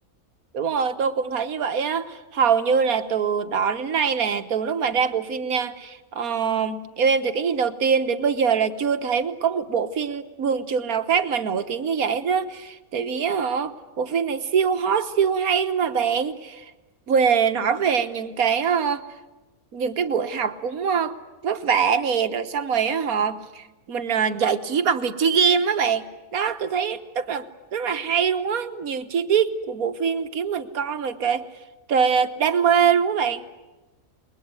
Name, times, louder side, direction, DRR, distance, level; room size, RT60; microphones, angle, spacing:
voice 1, 0.5-16.6 17.1-19.0 19.7-21.2 21.4-26.1 26.3-31.5 31.9-33.4, right 6 dB, 90° right, 10 dB, 1.7 m, -23 dB
28.5 x 21.5 x 9.6 m, 1.1 s
omnidirectional pair, 1.5 m